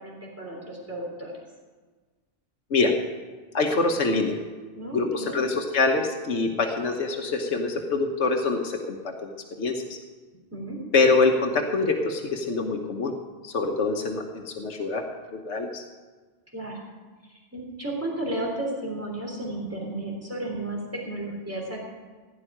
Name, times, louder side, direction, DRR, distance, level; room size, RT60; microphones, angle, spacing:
voice 1, 0.0-1.4 4.8-5.5 10.5-10.8 16.5-16.9 17.2-21.8, right 1 dB, 15° right, -2 dB, 3.4 m, -33 dB
voice 2, 3.5-4.4 4.9-10.0 10.9-13.1 13.4-15.0 15.3-15.8, left 3 dB, 85° left, 2 dB, 1.4 m, -25 dB
16.0 x 5.5 x 10.0 m, 1.4 s
omnidirectional pair, 1.1 m